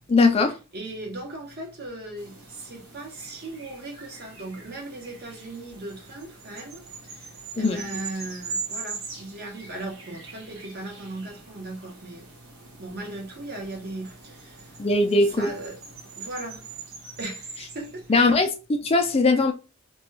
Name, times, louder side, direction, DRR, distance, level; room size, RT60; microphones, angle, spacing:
voice 1, 0.1-0.6 7.6-7.8 14.8-15.5 18.1-19.5, left 3 dB, 30° left, 0.4 m, -20 dB
voice 2, 0.7-18.3, right 2 dB, 50° right, 1.0 m, -38 dB
sound 1, 2.2-18.3, right 5 dB, 85° right, 1.2 m, -42 dB
2.9 x 2.3 x 3.2 m
head